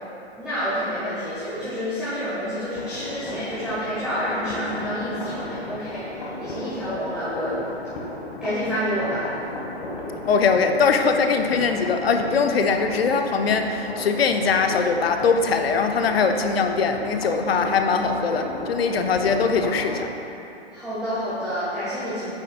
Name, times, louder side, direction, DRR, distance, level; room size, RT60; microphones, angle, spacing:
voice 1, 0.4-7.6 8.4-9.3 20.7-22.3, equal, ahead, -14 dB, 1.6 m, -28 dB
sound 1, 2.8-20.0, left 2 dB, 50° left, 1.5 m, -34 dB
voice 2, 10.3-20.1, left 5 dB, 65° left, 6 dB, 0.7 m, -21 dB
8.9 x 7.3 x 2.4 m, 2.8 s
figure-of-eight pair, 120°, 33 cm